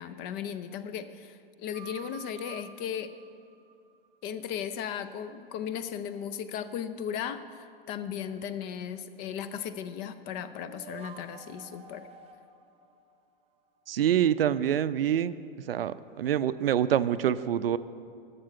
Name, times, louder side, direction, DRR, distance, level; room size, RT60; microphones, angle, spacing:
voice 1, 0.0-3.1 4.2-12.1, left 8 dB, 30° left, 12 dB, 0.5 m, -36 dB
sound 1, 1.7-4.1 10.6-13.9, right 7 dB, 20° right, 0.6 m, -50 dB
voice 2, 13.9-15.3 15.7-17.8, right 10 dB, 75° right, 15 dB, 0.5 m, -26 dB
12.0 x 6.8 x 5.7 m, 2.4 s
figure-of-eight pair, 100°, 30 cm